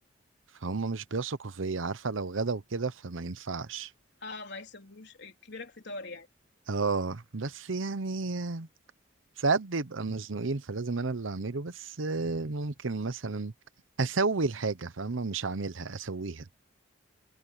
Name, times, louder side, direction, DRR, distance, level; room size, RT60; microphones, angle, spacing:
voice 1, 0.6-3.9 6.7-8.7 9.4-13.5 14.0-16.5, right 3 dB, 85° right, 0.9 m, -32 dB
voice 2, 4.2-6.3, left 3 dB, 60° left, 3.7 m, -42 dB
head